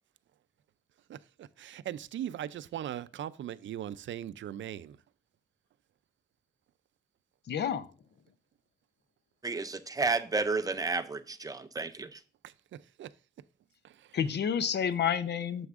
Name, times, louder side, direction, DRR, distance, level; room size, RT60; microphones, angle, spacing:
voice 1, 1.1-5.0 12.4-13.2 13.8-14.2, right 11 dB, 85° right, 0.4 m, -40 dB
voice 2, 7.5-7.9 14.1-15.7, left 8 dB, 65° left, 0.6 m, -29 dB
voice 3, 9.4-12.2, right 3 dB, 20° right, 0.4 m, -31 dB
9.5 x 7.0 x 2.4 m
wide cardioid pair, 170°, 19 cm